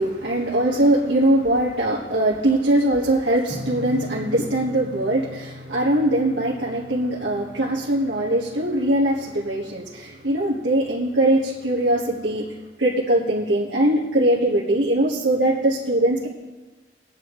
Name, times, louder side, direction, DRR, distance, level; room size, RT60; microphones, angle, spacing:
voice 1, 0.0-12.5 12.8-16.3, right 1 dB, 85° right, -4 dB, 1.5 m, -21 dB
sound 1, 3.5-10.7, left 1 dB, ahead, 1.9 m, -40 dB
20.5 x 9.3 x 3.1 m, 1.2 s
head